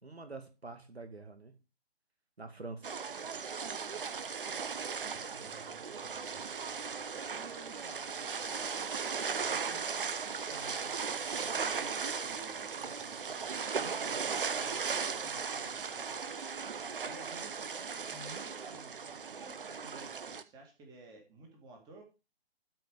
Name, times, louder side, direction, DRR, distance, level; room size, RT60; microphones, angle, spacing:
voice 1, 0.0-1.5 2.4-2.9, right 3 dB, 80° right, 7 dB, 2.1 m, -46 dB
sound 1, 2.8-20.4, right 5 dB, 55° right, 0.9 m, -37 dB
voice 2, 5.4-6.5 7.1-9.0 9.3-16.3 17.0-22.0, right 2 dB, 10° right, 2 dB, 2.0 m, -54 dB
13.0 x 4.9 x 5.0 m, 0.30 s
figure-of-eight pair, 140°, 32 cm